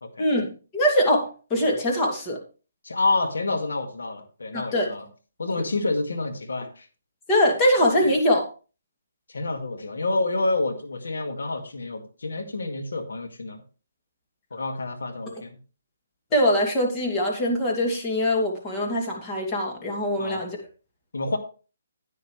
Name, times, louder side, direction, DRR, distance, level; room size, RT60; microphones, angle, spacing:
voice 1, 0.2-2.4 4.5-4.9 7.3-8.4 15.3-15.4 16.3-20.6, equal, 20° left, 0 dB, 2.4 m, -23 dB
voice 2, 2.8-5.1 5.4-6.9 8.0-8.1 9.3-13.6 14.5-15.6 20.2-20.4 21.1-21.4, left 2 dB, 85° left, 6 dB, 2.0 m, -28 dB
10.0 x 9.3 x 3.2 m, 0.35 s
hypercardioid pair, 155°, 0 cm